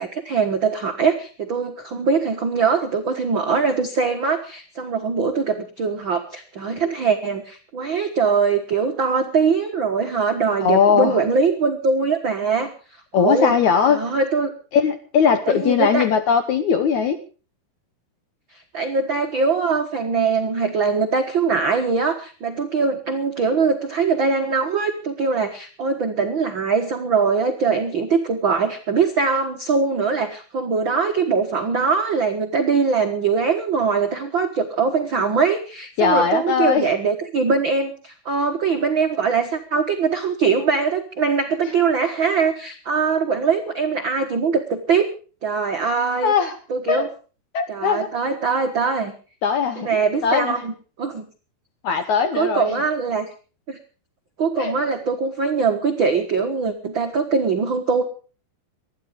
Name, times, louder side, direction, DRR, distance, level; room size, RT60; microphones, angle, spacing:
voice 1, 0.0-12.7 13.1-13.5 13.9-14.5 15.5-16.1 18.5-45.1 45.4-46.3 46.7-47.1 47.7-49.1 49.8-51.2 52.3-53.3 53.7-53.8 54.4-58.0, right 5 dB, 65° right, 4 dB, 1.1 m, -22 dB
voice 2, 10.6-11.2 13.1-14.0 14.7-17.2 36.0-36.9 46.2-46.6 46.9-47.0 47.5-48.1 49.4-50.6 51.8-52.8 54.6-54.7, left 6 dB, 70° left, 10 dB, 1.8 m, -19 dB
20.0 x 13.5 x 5.1 m, 0.37 s
omnidirectional pair, 4.6 m